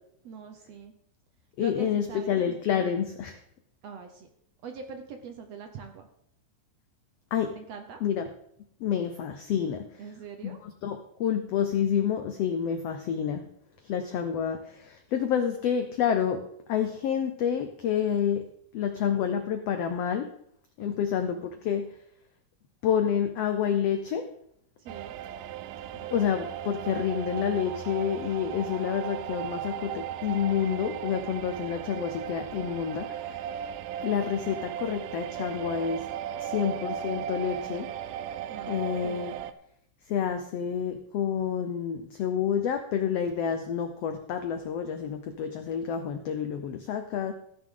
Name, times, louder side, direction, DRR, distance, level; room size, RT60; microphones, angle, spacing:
voice 1, 0.2-0.9 1.6-2.4 3.8-4.3 4.6-6.1 7.6-8.0 10.0-10.6 20.8-21.3 24.8-25.2 38.5-39.0, right 5 dB, 65° right, 6 dB, 1.8 m, -43 dB
voice 2, 1.6-3.4 7.3-7.6 8.0-8.3 8.8-10.0 10.4-13.4 13.8-16.4 16.7-18.4 18.7-20.3 20.8-21.9 22.8-24.3 25.9-33.6 34.0-36.0 36.4-37.9 38.7-39.3 40.1-47.3, left 8 dB, 80° left, 7 dB, 1.4 m, -29 dB
sound 1, 24.9-39.5, right 10 dB, 80° right, 2.2 m, -36 dB
15.0 x 9.5 x 3.8 m, 0.71 s
omnidirectional pair, 3.8 m